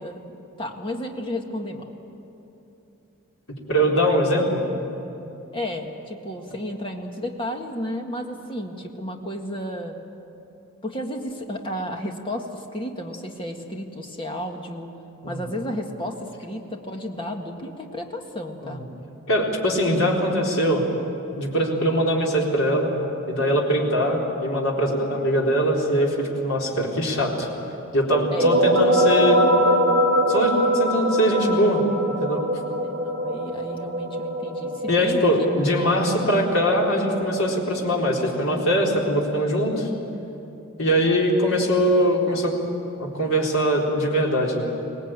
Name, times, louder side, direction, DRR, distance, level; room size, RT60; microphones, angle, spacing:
voice 1, 0.0-1.9 5.5-10.0 10.8-14.9 15.3-18.8 28.3-28.5 32.8-35.2 35.6-35.7 40.9-41.3, equal, 25° left, 2 dB, 1.8 m, -33 dB
voice 2, 3.7-4.7 15.2-15.5 18.6-18.8 19.3-20.8 21.4-23.0 23.3-27.5 27.9-29.4 30.3-31.8 32.2-32.4 34.9-39.9 40.8-42.5 43.0-44.7, equal, 75° left, -2 dB, 4.1 m, -22 dB
sound 1, 28.1-37.5, equal, 45° right, 3.7 m, -23 dB
24.0 x 18.5 x 9.0 m, 2.9 s
head